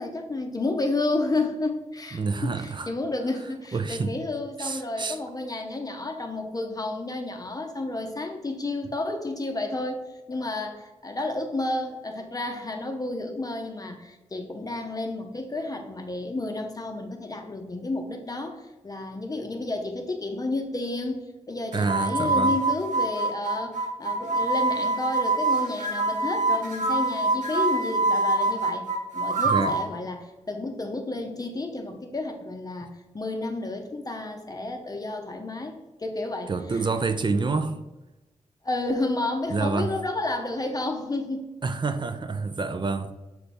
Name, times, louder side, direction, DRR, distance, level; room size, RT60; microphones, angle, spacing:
voice 1, 0.0-10.0 10.3-28.9 29.1-36.9 38.6-41.5, left 2 dB, 30° left, 0.7 m, -31 dB
voice 2, 2.1-2.9 3.7-4.2 4.6-5.2 21.7-22.5 29.4-29.8 36.5-37.8 39.5-40.0 41.6-43.1, right 4 dB, 40° right, 0.5 m, -27 dB
sound 1, 21.7-29.9, right 2 dB, 75° right, 1.0 m, -25 dB
6.8 x 3.4 x 4.2 m
wide cardioid pair, 110°, 13 cm